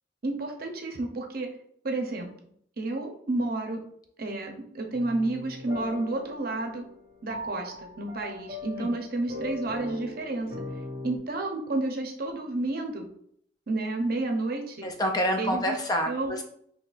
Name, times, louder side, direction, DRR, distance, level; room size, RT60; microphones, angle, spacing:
voice 1, 0.2-1.5 1.8-2.3 2.8-3.8 4.2-6.8 7.2-10.5 11.0-13.0 13.7-14.9 15.4-15.8 16.1-16.4, right 2 dB, 55° right, 3 dB, 0.6 m, -30 dB
sound 1, 4.9-11.2, left 2 dB, 25° right, 1.1 m, -40 dB
voice 2, 14.8-16.4, equal, 20° left, 3 dB, 0.4 m, -27 dB
3.9 x 2.8 x 2.4 m, 0.66 s
head